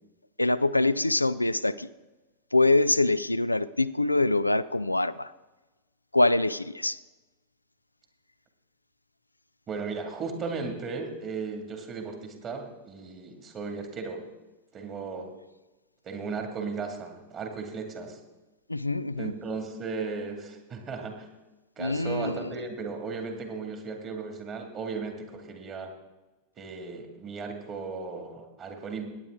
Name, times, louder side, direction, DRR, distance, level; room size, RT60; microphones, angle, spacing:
voice 1, 0.4-1.9 2.5-5.3 6.1-7.0 18.7-19.3 21.8-22.6, left 2 dB, 85° left, 15 dB, 0.3 m, -24 dB
voice 2, 9.7-14.2 14.7-15.3 16.0-18.2 19.2-21.3 21.8-25.9 26.6-29.1, right 4 dB, 30° right, 4 dB, 2.1 m, -36 dB
17.5 x 9.5 x 3.6 m, 1.1 s
figure-of-eight pair, 90°, 0 cm